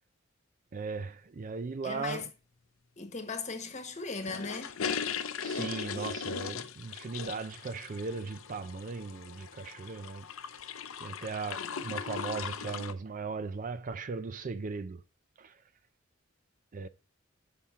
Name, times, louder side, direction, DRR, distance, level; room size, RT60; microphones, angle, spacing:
voice 1, 0.7-2.3 5.4-10.3 11.0-15.0 15.4-15.6 16.7-16.9, right 4 dB, 40° right, 0.4 m, -38 dB
voice 2, 1.8-2.3 3.0-4.8, left 4 dB, 35° left, 1.2 m, -38 dB
sound 1, 4.2-12.9, left 6 dB, 80° left, 0.6 m, -38 dB
7.1 x 5.8 x 3.6 m
head